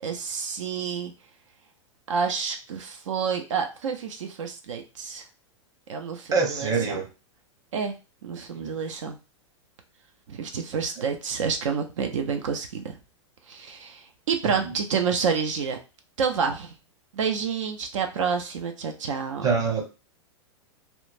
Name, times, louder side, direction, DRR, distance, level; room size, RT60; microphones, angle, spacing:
voice 1, 0.0-1.1 2.1-5.3 5.9-7.0 7.7-8.0 8.2-9.2 10.3-13.0 13.5-15.8 16.2-16.7 17.1-19.5, right 6 dB, 80° right, 0.5 m, -29 dB
voice 2, 6.3-7.1 8.5-8.7 14.5-14.7 19.4-19.9, right 5 dB, 20° right, 0.7 m, -25 dB
2.9 x 2.1 x 2.4 m
hypercardioid pair, 110°, 16 cm